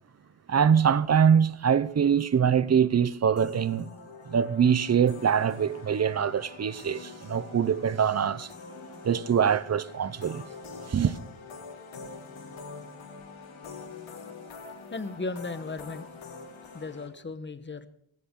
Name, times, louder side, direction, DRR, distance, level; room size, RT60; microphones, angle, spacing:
voice 1, 0.5-3.9 4.3-8.5 9.0-10.4 10.9-11.2, right 7 dB, 35° right, 0.7 m, -23 dB
sound 1, 3.4-17.1, left 4 dB, 75° left, 3.1 m, -45 dB
voice 2, 14.9-16.1 16.7-17.9, left 3 dB, 25° left, 1.1 m, -36 dB
17.5 x 16.5 x 3.8 m
wide cardioid pair, 160°, 48 cm